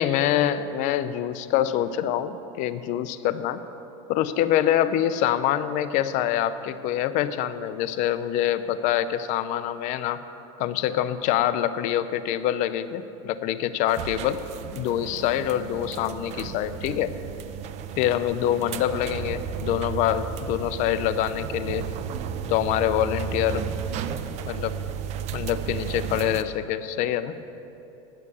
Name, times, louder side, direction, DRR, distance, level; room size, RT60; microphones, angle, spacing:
voice 1, 0.0-3.6 4.1-10.2 10.6-14.4 14.7-17.1 18.0-21.9 22.5-23.6 24.5-24.8 25.3-27.4, left 11 dB, 50° left, 13 dB, 0.5 m, -25 dB
sound 1, 13.9-26.4, right 8 dB, 45° right, 0.5 m, -33 dB
9.9 x 6.8 x 8.2 m, 3.0 s
supercardioid pair, 130°, 16 cm